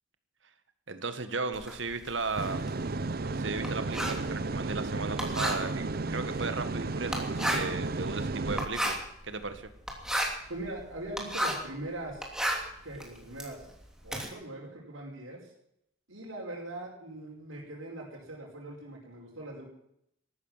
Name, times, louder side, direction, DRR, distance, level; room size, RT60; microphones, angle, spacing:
voice 1, 0.9-2.6 3.2-9.7, right 3 dB, 65° right, 10 dB, 1.8 m, -36 dB
Writing, 1.5-11.7 12.1-14.3, equal, 5° right, 2.9 m, -34 dB
sound 1, 2.4-8.7, right 3 dB, 50° right, 0.7 m, -33 dB
voice 2, 10.5-12.3 12.8-13.6 14.0-15.4 16.1-19.6, right 1 dB, 90° right, -2 dB, 5.2 m, -41 dB
14.0 x 12.5 x 7.4 m, 0.75 s
head